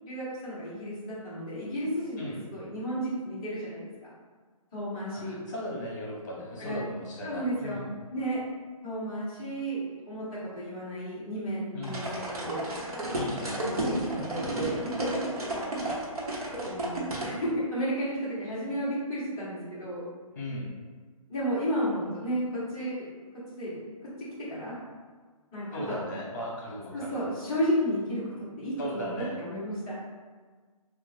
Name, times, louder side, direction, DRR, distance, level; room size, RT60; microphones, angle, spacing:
voice 1, 0.0-3.9 4.7-5.4 6.6-6.8 7.2-8.4 8.8-10.3 10.5-12.9 13.7-14.8 15.4-16.0 16.6-20.0 21.3-23.1 23.5-23.8 24.5-24.7 25.5-25.8 26.9-29.9, equal, 5° left, -12 dB, 0.4 m, -33 dB
voice 2, 5.1-7.9 11.7-12.0 13.1-13.8 20.3-20.7 25.7-27.2 28.8-29.4, equal, 30° left, -3 dB, 0.9 m, -37 dB
sound 1, 11.8-17.3, right 1 dB, 85° right, 1.1 m, -32 dB
3.0 x 2.3 x 3.7 m, 1.5 s
hypercardioid pair, 170°, 19 cm